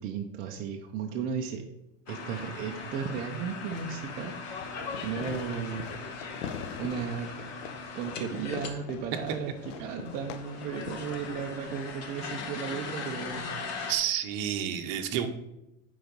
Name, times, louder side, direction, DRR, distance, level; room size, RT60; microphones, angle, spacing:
voice 1, 0.0-1.6 2.1-5.9 6.8-7.3 7.9-14.0 15.1-15.3, right 7 dB, 25° right, 1 dB, 0.5 m, -35 dB
sound 1, 2.1-8.7 8.9-9.0 9.2-13.9, left 4 dB, 40° left, 1.2 m, -40 dB
Fireworks, 3.7-12.7, left 7 dB, 70° left, 0.8 m, -43 dB
voice 2, 13.9-15.3, right 10 dB, 45° right, 6 dB, 1.0 m, -30 dB
9.3 x 4.0 x 5.2 m, 0.91 s
supercardioid pair, 160°, 38 cm